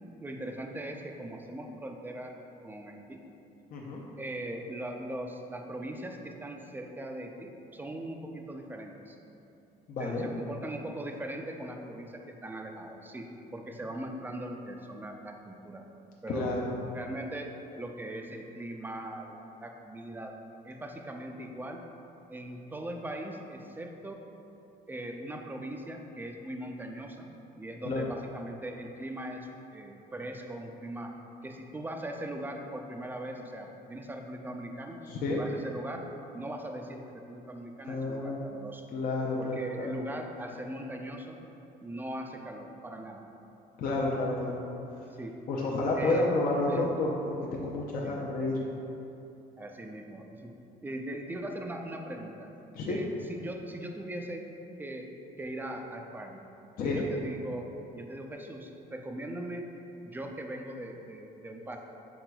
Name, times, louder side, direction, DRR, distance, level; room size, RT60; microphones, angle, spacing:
voice 1, 0.2-2.4 2.6-3.3 4.2-9.2 10.0-15.8 16.2-16.5 16.9-20.3 20.6-21.8 22.3-24.2 24.9-27.3 27.5-31.1 31.4-35.0 35.3-36.1 36.3-38.9 39.4-41.4 41.8-43.2 45.2-45.4 46.0-46.3 46.7-46.9 48.0-48.2 49.6-50.6 50.8-52.5 52.9-54.5 54.8-56.4 56.8-59.7 60.0-61.8, right 1 dB, 10° right, 3 dB, 0.4 m, -40 dB
voice 2, 3.7-4.0 9.9-10.3 16.3-16.7 27.9-28.0 35.1-35.4 37.8-38.4 38.9-39.9 43.8-44.6 45.5-48.6 52.7-53.0 56.8-57.1, left 2 dB, 55° left, -3 dB, 0.6 m, -30 dB
6.0 x 3.9 x 2.3 m, 2.9 s
cardioid pair, 110°, 17 cm